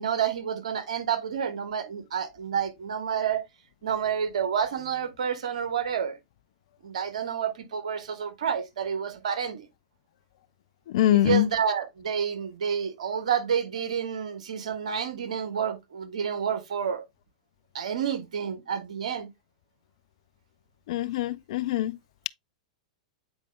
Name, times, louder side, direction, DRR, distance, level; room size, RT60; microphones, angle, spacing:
voice 1, 0.0-3.4 3.8-6.2 6.8-9.7 11.1-17.0 17.7-19.3, right 7 dB, 70° right, 1.5 m, -29 dB
voice 2, 10.9-11.5 20.9-22.0, left 13 dB, 60° left, 0.4 m, -23 dB
8.8 x 4.9 x 2.2 m
figure-of-eight pair, 105°, 4 cm